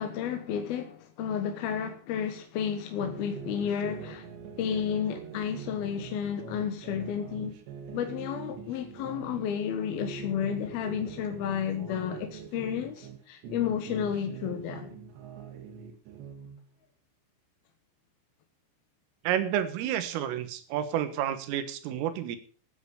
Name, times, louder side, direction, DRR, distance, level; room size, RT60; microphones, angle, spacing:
voice 1, 0.0-4.3 4.6-7.5 7.9-15.0, left 8 dB, 65° left, 2.6 m, -32 dB
sound 1, 3.0-9.5 9.9-13.2 13.4-16.6, right 6 dB, 65° right, 3.9 m, -43 dB
voice 2, 19.3-22.4, right 10 dB, 85° right, 4.0 m, -30 dB
13.0 x 9.7 x 6.9 m
omnidirectional pair, 5.7 m